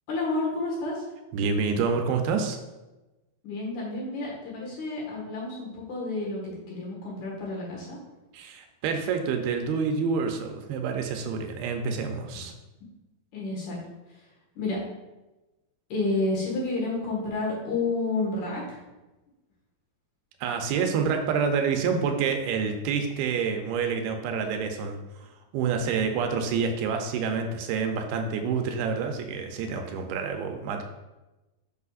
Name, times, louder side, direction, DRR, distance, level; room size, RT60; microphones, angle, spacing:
voice 1, 0.1-1.1 3.4-8.0 13.3-13.8 14.1-14.2 14.5-14.9 15.9-18.8, left 2 dB, 60° left, -4 dB, 2.8 m, -30 dB
voice 2, 1.3-2.6 8.3-12.5 20.4-25.0 25.5-30.8, right 5 dB, 80° right, 5 dB, 2.6 m, -27 dB
8.2 x 6.5 x 2.4 m, 1.1 s
omnidirectional pair, 4.4 m